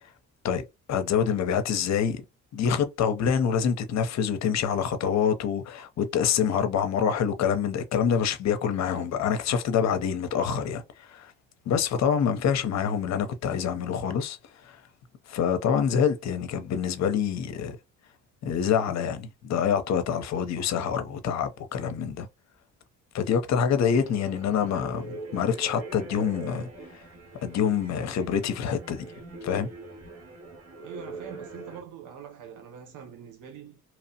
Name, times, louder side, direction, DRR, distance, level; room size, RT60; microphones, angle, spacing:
voice 1, 0.9-2.2 2.5-11.3 11.7-14.4 14.6-14.8 15.3-17.8 18.4-22.3 23.1-26.7 27.4-29.1 29.4-29.7, left 7 dB, 60° left, 0.6 m, -26 dB
sound 1, 23.8-31.8, right 3 dB, 55° right, 1.5 m, -43 dB
voice 2, 30.8-33.8, right 8 dB, 90° right, 0.8 m, -44 dB
2.9 x 2.0 x 2.7 m
cardioid pair, 90°, 30 cm